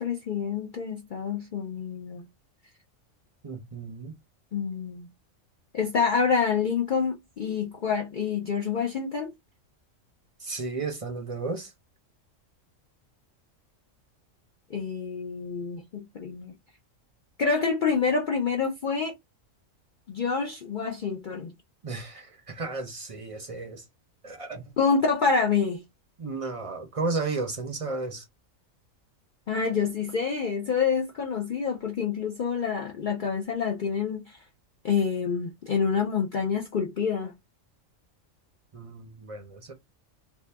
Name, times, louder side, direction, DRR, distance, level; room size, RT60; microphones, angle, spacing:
voice 1, 0.0-2.3 4.5-5.1 5.7-9.3 14.7-16.5 17.4-19.1 20.1-21.5 24.8-25.8 29.5-34.4 34.8-37.3, left 5 dB, 55° left, 0.5 m, -27 dB
voice 2, 3.4-4.2 10.4-11.7 21.8-23.8 24.2-24.7 26.2-28.3 38.7-39.7, right 3 dB, 35° right, 0.6 m, -33 dB
2.6 x 2.4 x 3.3 m
omnidirectional pair, 1.3 m